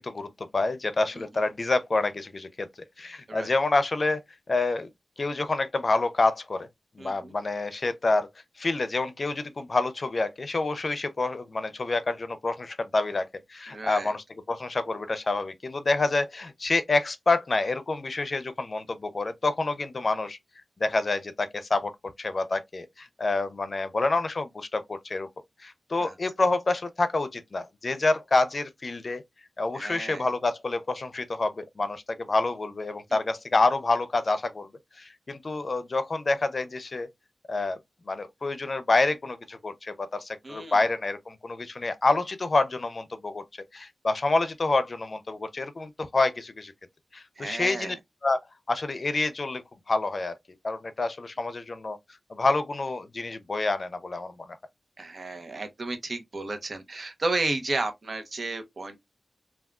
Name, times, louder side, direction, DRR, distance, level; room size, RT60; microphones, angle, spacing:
voice 1, 0.0-2.7 3.0-4.2 4.5-4.9 5.2-6.7 7.0-8.3 8.6-20.4 20.8-21.9 22.2-25.3 25.6-29.2 29.6-34.7 35.0-37.1 37.5-37.8 38.1-43.4 43.7-46.7 47.1-48.0 48.2-49.6 49.9-50.3 50.6-52.0 52.3-54.5, left 3 dB, 50° left, 0.5 m, -27 dB
voice 2, 7.0-7.3 13.7-14.1 26.0-26.1 29.7-30.3 40.4-40.8 47.4-48.0 55.0-59.0, right 3 dB, 60° right, 0.8 m, -33 dB
3.5 x 2.4 x 2.3 m
cardioid pair, 55°, 0 cm